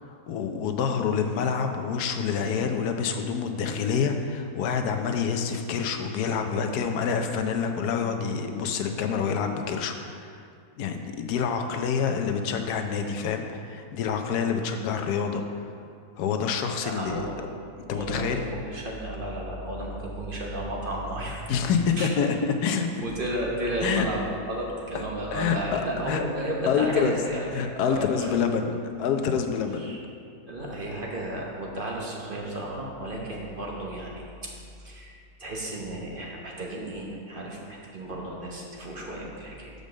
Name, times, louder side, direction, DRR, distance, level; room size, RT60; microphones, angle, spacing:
voice 1, 0.3-10.4 10.8-15.4 16.2-17.3 17.9-18.4 21.5-23.0 23.8-24.1 25.3-26.2 26.7-27.2 27.5-30.0, left 6 dB, 90° left, 5 dB, 1.2 m, -27 dB
voice 2, 16.8-17.4 17.9-21.4 22.0-22.1 23.0-27.5 27.9-28.3 29.8-30.0 30.5-34.2 34.8-35.1 35.4-39.7, right 1 dB, 40° right, -3 dB, 1.1 m, -33 dB
6.8 x 5.2 x 6.3 m, 2.3 s
omnidirectional pair, 1.6 m